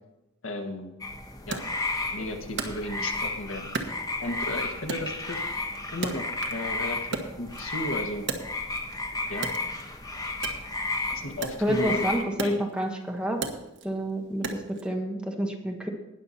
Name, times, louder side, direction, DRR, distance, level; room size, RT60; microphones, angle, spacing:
voice 1, 0.4-1.0 1.5-1.6 2.1-3.9 4.2-5.4 5.9-7.0 7.4-8.2 9.3-9.5 11.1-12.6, left 1 dB, 80° left, 3 dB, 1.8 m, -34 dB
sound 1, 1.0-12.2, left 2 dB, 20° left, 1.2 m, -33 dB
Wood, 1.5-3.3 3.7-4.5 4.9-6.7 7.0-8.9 9.3-14.9, right 4 dB, 60° right, 1.4 m, -37 dB
voice 2, 11.6-13.4 13.8-15.9, equal, 5° right, 1 dB, 1.4 m, -28 dB
19.5 x 6.9 x 4.3 m, 0.98 s
head